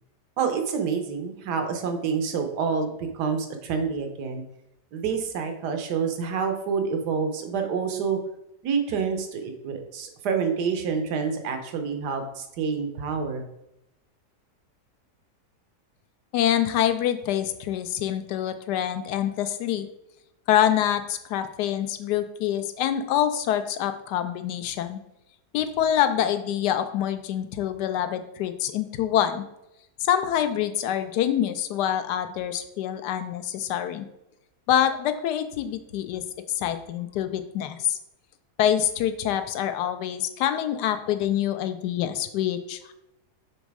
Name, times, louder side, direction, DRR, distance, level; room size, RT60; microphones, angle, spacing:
voice 1, 0.4-4.4 4.9-8.2 8.6-13.4, right 5 dB, 85° right, 5 dB, 1.4 m, -28 dB
voice 2, 16.3-19.9 20.5-25.0 25.5-29.4 30.0-34.1 34.7-36.2 36.5-38.0 38.6-42.9, left 10 dB, 90° left, 9 dB, 1.2 m, -26 dB
6.2 x 4.0 x 4.7 m, 0.86 s
omnidirectional pair, 1.7 m